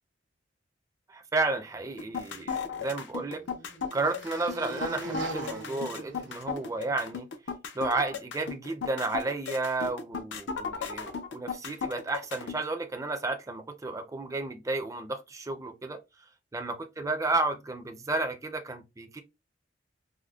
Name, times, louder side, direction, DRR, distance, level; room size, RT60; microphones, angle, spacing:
voice 1, 1.1-3.4 3.9-7.3 7.7-16.0 16.5-19.2, right 3 dB, 20° right, 0.4 m, -32 dB
sound 1, 2.0-12.6, left 5 dB, 70° left, 0.6 m, -35 dB
motorcycle dirt bike motocross pass by fast doppler, 2.3-6.9, right 2 dB, 80° right, 1.0 m, -42 dB
4.9 x 2.1 x 2.3 m
head